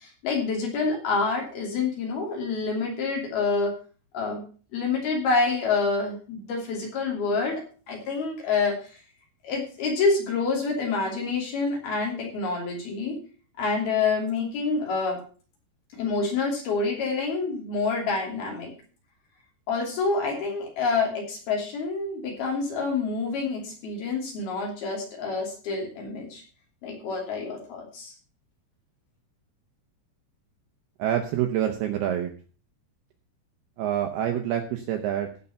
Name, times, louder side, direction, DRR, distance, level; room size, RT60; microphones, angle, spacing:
voice 1, 0.0-3.7 4.1-4.4 4.7-7.6 7.9-9.0 9.4-13.2 13.6-15.2 16.0-18.7 19.7-26.4 26.8-28.1, left 4 dB, 55° left, 0 dB, 4.4 m, -27 dB
voice 2, 31.0-32.3 33.8-35.3, right 10 dB, 75° right, 4 dB, 2.4 m, -26 dB
15.5 x 5.5 x 5.6 m, 0.39 s
omnidirectional pair, 5.5 m